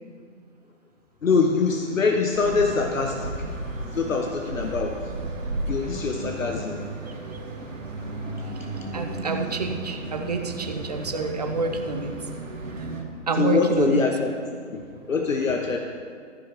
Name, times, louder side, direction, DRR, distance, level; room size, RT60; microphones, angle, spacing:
voice 1, 1.2-3.5 3.8-5.0 5.7-6.8 13.4-14.3 14.7-15.8, left 4 dB, 80° left, 3 dB, 1.1 m, -24 dB
sound 1, 2.3-13.0, right 2 dB, 70° right, 2.3 m, -34 dB
voice 2, 8.9-12.1 12.8-12.9 13.3-14.0, right 3 dB, 30° right, 5 dB, 0.8 m, -28 dB
13.5 x 5.0 x 5.9 m, 2.2 s
hypercardioid pair, 165°, 39 cm